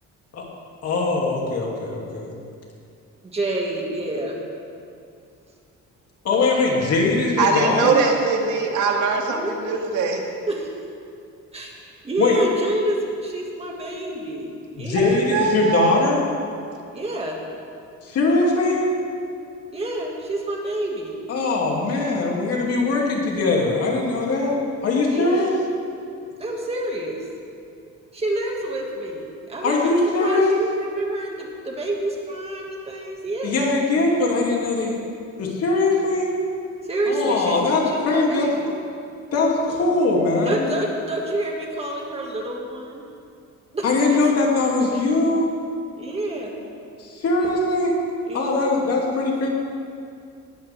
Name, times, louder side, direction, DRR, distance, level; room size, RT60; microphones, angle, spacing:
voice 1, 0.8-1.9 6.2-8.0 12.2-12.3 14.8-16.2 18.1-18.8 21.3-24.6 24.8-25.5 29.6-30.5 33.4-35.0 35.4-36.3 37.1-38.5 39.3-40.7 43.8-45.5 47.0-47.9 48.3-49.5, left 3 dB, 55° left, -2 dB, 2.8 m, -21 dB
voice 2, 3.3-4.4 9.3-9.6 10.5-10.7 11.5-15.2 16.9-17.4 19.7-21.1 25.1-25.5 26.4-27.2 28.1-29.9 30.2-33.7 36.9-37.6 37.8-38.7 40.4-43.0 43.7-44.2 44.9-45.0 46.0-46.5 48.3-48.6, right 2 dB, 20° right, -1 dB, 2.1 m, -28 dB
voice 3, 7.4-10.2 15.0-16.1, right 4 dB, 75° right, 1 dB, 2.0 m, -21 dB
19.0 x 14.0 x 3.6 m, 2.4 s
cardioid pair, 165°, 30 cm